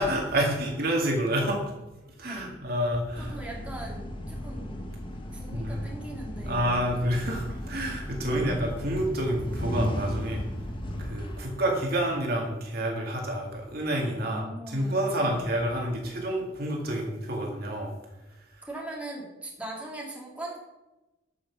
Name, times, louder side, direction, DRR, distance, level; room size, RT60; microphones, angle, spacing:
voice 1, 0.0-1.6 2.0-3.3 5.5-5.8 6.4-10.4 11.0-17.9 18.3-18.6, right 1 dB, 50° right, 0 dB, 2.3 m, -29 dB
sound 1, 3.1-12.2, equal, 25° left, 1.4 m, -35 dB
voice 2, 3.2-4.9 5.3-6.7 8.2-8.6 14.2-15.4 18.7-20.6, right 1 dB, 5° right, -3 dB, 2.9 m, -40 dB
12.5 x 6.1 x 7.1 m, 1.0 s
head